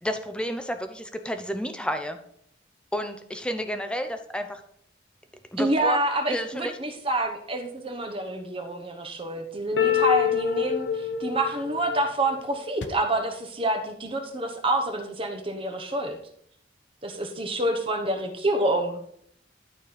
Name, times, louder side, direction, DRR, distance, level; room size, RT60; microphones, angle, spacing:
voice 1, 0.0-2.2 2.9-4.6 5.5-6.0 6.3-6.7, equal, 5° left, 7 dB, 0.7 m, -31 dB
voice 2, 5.6-16.2 17.0-19.0, right 1 dB, 30° right, 4 dB, 1.1 m, -27 dB
sound 1, 9.8-12.9, left 8 dB, 70° left, 0.9 m, -26 dB
12.0 x 4.3 x 5.1 m, 0.68 s
head